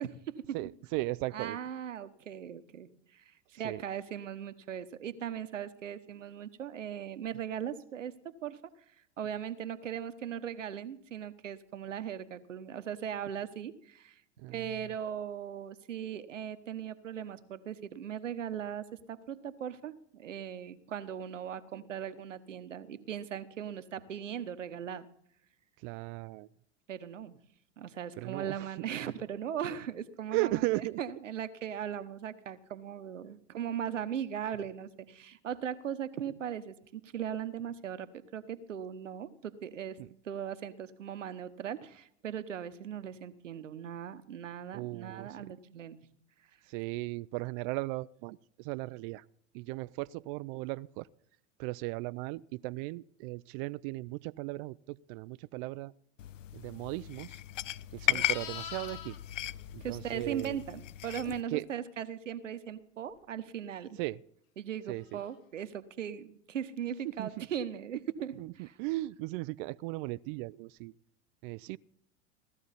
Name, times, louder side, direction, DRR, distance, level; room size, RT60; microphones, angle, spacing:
voice 1, 0.0-0.6 1.3-8.1 8.4-8.6 9.2-14.2 14.5-25.1 26.9-27.4 27.8-38.1 38.3-40.0 40.2-46.0 58.1-58.3 59.8-64.0 64.6-68.7, right 9 dB, 90° right, 1.1 m, -39 dB
voice 2, 0.5-1.6 3.6-3.8 14.4-14.7 25.8-26.5 28.2-28.7 30.3-31.0 40.0-40.1 44.7-45.4 46.7-49.2 49.5-51.1 51.6-55.9 56.5-57.4 57.9-59.2 59.7-60.6 61.5-61.7 64.0-64.2 64.9-65.2 67.0-67.5 68.4-70.9 71.4-71.8, right 20 dB, 50° right, 0.4 m, -37 dB
sound 1, 56.2-61.4, left 12 dB, 90° left, 0.5 m, -36 dB
Livestock farm animals working animals, 57.5-60.7 65.1-65.3, left 9 dB, 55° left, 2.4 m, -46 dB
17.0 x 13.5 x 4.2 m
hypercardioid pair, 95°, 36 cm